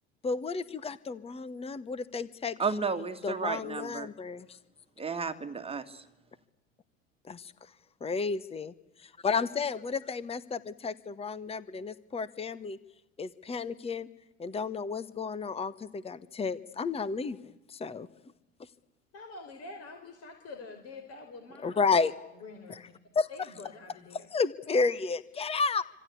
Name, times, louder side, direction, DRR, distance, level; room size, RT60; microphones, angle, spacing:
voice 1, 0.2-2.6 3.2-4.4 7.3-7.5 8.0-8.7 9.2-12.8 13.2-14.1 14.4-17.4 17.7-18.1 21.6-22.1 22.7-22.8 23.1-23.3 24.3-25.8, left 4 dB, 15° left, 17 dB, 1.2 m, -31 dB
voice 2, 2.6-4.1 5.0-5.8, right 4 dB, 15° right, 8 dB, 2.1 m, -32 dB
voice 3, 19.1-21.8 22.4-22.8 23.3-24.3 24.7-24.8, left 3 dB, 40° left, 5 dB, 4.9 m, -46 dB
27.0 x 26.0 x 8.5 m, 0.96 s
figure-of-eight pair, 75°, 37 cm